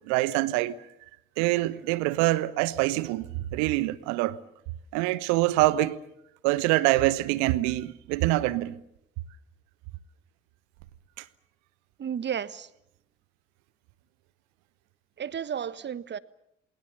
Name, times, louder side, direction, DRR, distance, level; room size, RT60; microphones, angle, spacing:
voice 1, 0.1-0.7 1.4-3.3 3.5-4.4 4.9-6.0 6.4-8.8 11.2-11.3, right 17 dB, 65° right, 1.1 m, -25 dB
voice 2, 12.0-12.7 15.2-16.2, right 8 dB, 35° right, 1.2 m, -32 dB
28.5 x 21.0 x 6.9 m
figure-of-eight pair, 45°, 30 cm